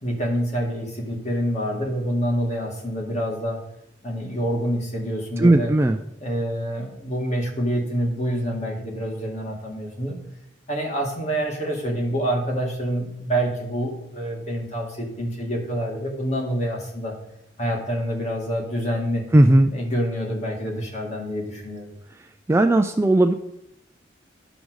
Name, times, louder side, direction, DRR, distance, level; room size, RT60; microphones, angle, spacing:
voice 1, 0.0-3.6 4.0-5.7 6.2-10.2 10.7-17.1 17.6-19.2 19.7-21.9, equal, 40° left, 0 dB, 2.2 m, -27 dB
voice 2, 5.4-6.0 19.3-19.7 22.5-23.3, right 1 dB, 15° right, 6 dB, 0.3 m, -16 dB
10.5 x 5.1 x 6.3 m, 0.81 s
head